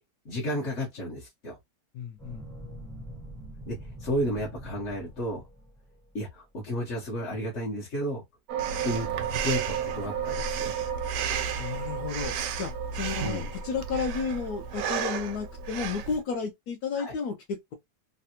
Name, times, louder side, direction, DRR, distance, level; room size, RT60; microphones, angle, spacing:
voice 1, 0.2-1.6 3.7-5.4 6.1-8.2 8.8-9.1 9.4-10.7 13.2-13.5 17.0-17.1, equal, 50° left, 1.0 m, -32 dB
voice 2, 1.9-2.4 11.6-17.7, left 5 dB, 75° left, 1.0 m, -33 dB
sound 1, 2.2-6.3, right 1 dB, 5° left, 0.6 m, -44 dB
sound 2, 8.5-15.9, right 10 dB, 70° right, 0.8 m, -35 dB
Breathing, 8.6-16.2, right 6 dB, 85° right, 1.2 m, -34 dB
3.3 x 2.3 x 2.7 m
omnidirectional pair, 1.8 m